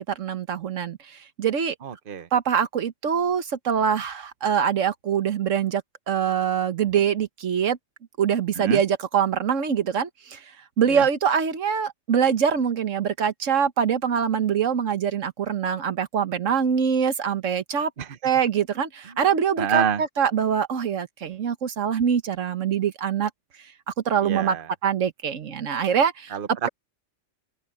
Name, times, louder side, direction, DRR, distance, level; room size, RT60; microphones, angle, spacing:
voice 1, 0.1-1.8 2.3-5.8 6.1-7.8 8.2-10.4 10.8-17.9 18.2-23.3 24.0-24.6 24.8-26.4, right 7 dB, 85° right, 1.5 m, -24 dB
voice 2, 1.8-2.3 8.5-8.8 10.9-11.1 18.0-18.2 19.1-19.2 19.6-20.0 24.2-24.7 26.3-26.7, right 7 dB, 45° right, 1.1 m, -27 dB
open air
omnidirectional pair, 1.3 m